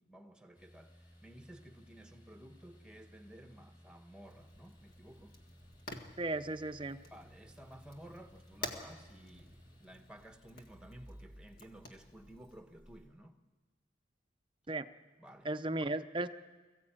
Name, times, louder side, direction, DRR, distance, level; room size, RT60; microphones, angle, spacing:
voice 1, 0.0-5.4 7.1-13.4 15.2-15.5, right 1 dB, 5° right, 1.2 m, -54 dB
sound 1, 0.5-13.1, equal, 25° left, 4.0 m, -59 dB
Fire, 4.2-12.6, left 2 dB, 50° left, 1.8 m, -51 dB
voice 2, 6.2-7.0 14.7-14.9 15.4-16.3, right 2 dB, 25° right, 0.7 m, -35 dB
22.0 x 15.0 x 8.9 m
head